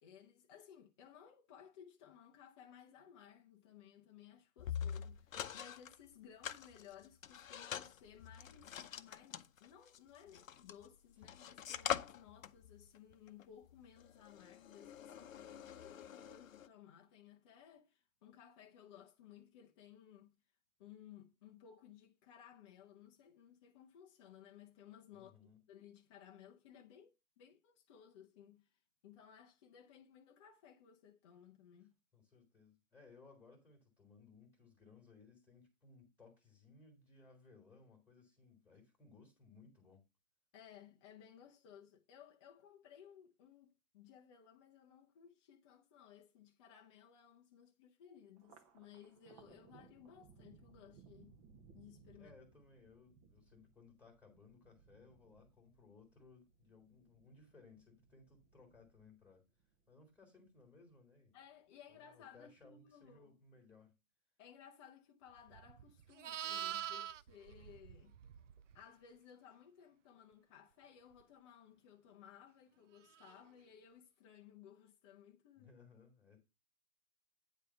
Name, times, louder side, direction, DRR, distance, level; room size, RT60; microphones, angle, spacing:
voice 1, 0.0-20.4 20.8-28.7 29.0-32.0 40.5-51.4 51.7-52.4 61.3-63.4 64.4-68.1 68.7-75.7, left 9 dB, 20° left, 0.6 m, -59 dB
sound 1, 4.6-6.0 6.4-10.9 11.2-16.7, left 9 dB, 70° left, 0.8 m, -45 dB
voice 2, 25.1-25.6 32.1-40.0 52.1-59.4 59.9-61.4 61.9-63.9 75.6-76.4, left 4 dB, 5° left, 1.7 m, -63 dB
Thunder, 48.4-61.0 61.4-62.2 62.6-63.4, right 6 dB, 25° right, 0.8 m, -65 dB
Livestock farm animals working animals, 65.5-68.8 73.1-73.4, right 10 dB, 60° right, 0.5 m, -45 dB
9.1 x 3.4 x 5.6 m
hypercardioid pair, 135°, 42 cm